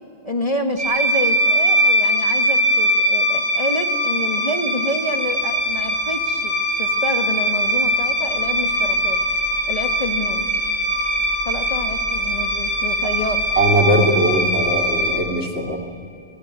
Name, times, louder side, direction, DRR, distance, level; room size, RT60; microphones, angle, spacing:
voice 1, 0.2-9.2 9.7-10.5 11.5-13.5, left 1 dB, 35° left, 5 dB, 1.9 m, -28 dB
sound 1, 0.8-15.1, equal, 40° right, 7.6 m, -21 dB
voice 2, 13.6-15.8, right 1 dB, 90° right, 2 dB, 3.3 m, -20 dB
29.5 x 22.5 x 8.4 m, 2.7 s
omnidirectional pair, 1.1 m